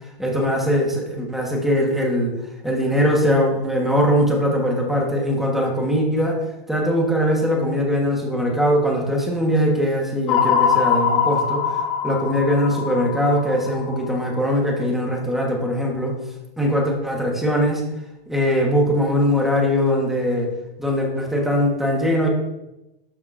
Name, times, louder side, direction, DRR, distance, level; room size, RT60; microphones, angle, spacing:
voice 1, 0.2-2.4 2.6-16.1 16.6-17.8 18.3-20.5 20.8-22.3, equal, ahead, -1 dB, 1.4 m, -21 dB
sound 1, 10.3-14.5, left 7 dB, 35° left, 1.0 m, -22 dB
12.5 x 6.9 x 2.7 m, 0.94 s
hypercardioid pair, 160°, 29 cm